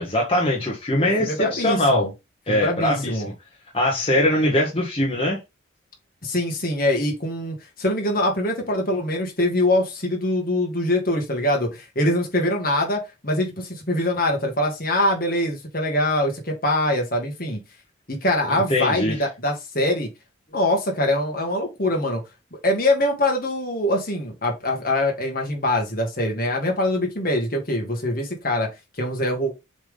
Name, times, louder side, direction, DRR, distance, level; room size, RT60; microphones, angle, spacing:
voice 1, 0.0-2.1 2.5-3.2 3.7-5.4 18.5-19.2, left 1 dB, 25° left, 1.5 m, -22 dB
voice 2, 1.0-2.1 2.5-3.3 6.2-17.6 18.1-20.1 20.5-22.2 22.6-28.7 29.0-29.5, left 1 dB, 45° left, 2.0 m, -23 dB
7.2 x 3.6 x 3.9 m
head